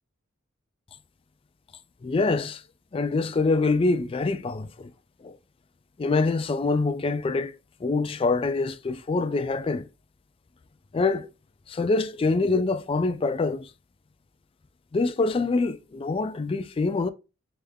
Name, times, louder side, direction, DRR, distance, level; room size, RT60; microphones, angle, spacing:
voice 1, 2.0-2.6 2.9-4.9 5.2-5.4 6.0-7.5 7.8-9.9 10.9-11.3 11.7-13.7 14.9-17.1, left 3 dB, 25° left, 0.3 m, -25 dB
3.5 x 3.2 x 3.4 m
head